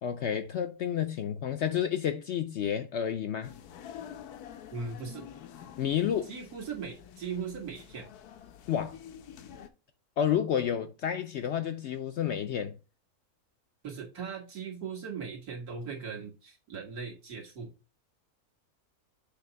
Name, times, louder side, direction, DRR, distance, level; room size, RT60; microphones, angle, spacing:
voice 1, 0.0-3.6 5.8-6.3 8.7-9.0 10.2-12.8, left 9 dB, 65° left, 0.7 m, -30 dB
sound 1, 3.4-9.7, left 9 dB, 90° left, 1.3 m, -48 dB
voice 2, 4.7-5.3 6.3-8.1 13.8-17.7, right 5 dB, 75° right, 2.2 m, -39 dB
6.9 x 2.9 x 5.5 m
omnidirectional pair, 1.6 m